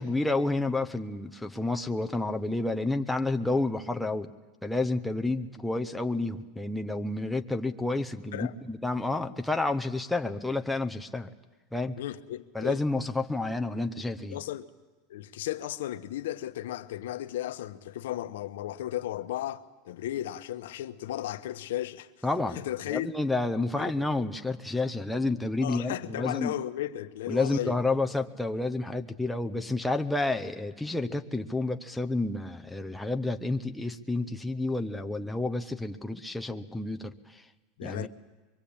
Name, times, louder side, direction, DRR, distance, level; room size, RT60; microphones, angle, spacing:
voice 1, 0.0-4.3 4.6-11.3 11.7-12.0 12.5-14.4 22.2-22.6 22.9-26.5 27.3-37.4 37.8-38.1, left 2 dB, ahead, 0.8 m, -30 dB
voice 2, 12.0-12.8 14.3-14.7 15.1-22.1 22.5-23.1 23.8-23.9 25.6-27.8 37.8-38.1, left 13 dB, 90° left, 1.1 m, -35 dB
23.5 x 23.0 x 8.7 m
supercardioid pair, 160°, 0 cm